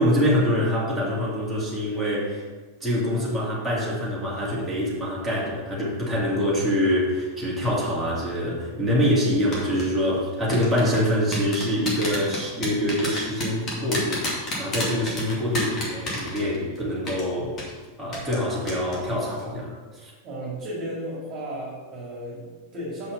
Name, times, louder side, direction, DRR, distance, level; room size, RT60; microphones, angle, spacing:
voice 1, 0.0-2.4 2.8-17.6 18.0-20.1, equal, 5° right, -7 dB, 2.7 m, -25 dB
sound 1, 9.5-9.8 10.5-16.8 17.1-17.2 17.6-17.7 18.1-18.4 18.7-19.0 19.3-19.4, left 1 dB, 30° left, 2.3 m, -30 dB
voice 2, 20.2-23.1, right 1 dB, 35° right, -6 dB, 2.5 m, -34 dB
6.5 x 5.6 x 5.5 m, 1.3 s
figure-of-eight pair, 90°, 0 cm